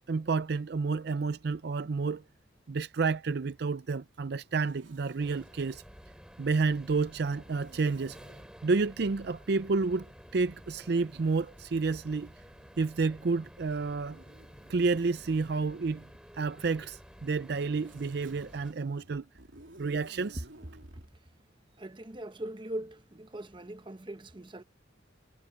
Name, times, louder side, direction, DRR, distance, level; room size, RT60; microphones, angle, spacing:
voice 1, 0.1-2.2 2.7-5.8 6.4-8.2 8.6-10.1 10.3-12.3 12.8-14.2 14.7-16.1 16.3-19.2 19.8-20.4, right 4 dB, 55° right, 0.5 m, -30 dB
Zipper (clothing), 4.4-5.8 7.4-8.5 9.9-13.1 13.9-16.2 17.1-21.1, right 2 dB, 85° right, 3.1 m, -57 dB
sound 1, 5.2-18.7, equal, 5° right, 4.7 m, -52 dB
voice 2, 21.8-24.6, right 1 dB, 25° right, 0.9 m, -41 dB
head